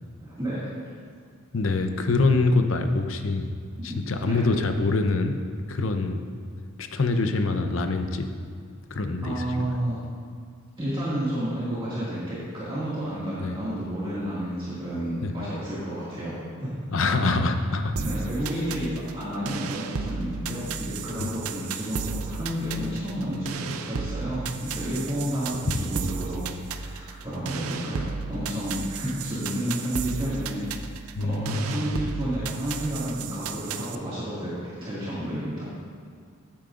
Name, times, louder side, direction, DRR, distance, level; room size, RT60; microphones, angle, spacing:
voice 1, 0.2-0.7 4.2-4.4 9.2-10.0 10.8-16.7 18.0-26.4 26.7-30.7 31.0-35.6, equal, 25° right, -11 dB, 2.0 m, -31 dB
voice 2, 1.5-3.5 3.8-6.3 6.8-8.3 8.9-9.7 13.4-13.6 15.2-15.3 16.9-17.9 21.2-21.3 25.5-25.8 31.2-31.8, left 3 dB, 60° left, 7 dB, 0.7 m, -25 dB
sound 1, 18.0-34.0, right 5 dB, 75° right, 0.5 m, -34 dB
14.5 x 8.7 x 2.5 m, 2.2 s
head